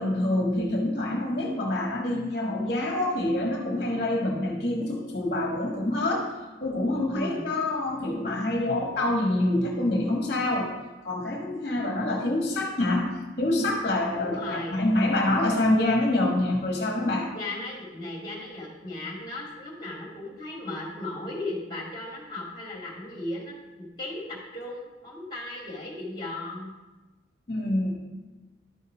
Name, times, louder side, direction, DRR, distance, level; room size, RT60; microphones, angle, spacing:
voice 1, 0.0-6.3 6.6-10.7 11.0-17.3 27.5-27.9, left 1 dB, 45° left, -1 dB, 1.4 m, -26 dB
voice 2, 7.1-7.5 14.2-14.9 17.3-26.7, left 2 dB, 25° left, -2 dB, 2.2 m, -36 dB
11.0 x 5.6 x 5.0 m, 1.2 s
head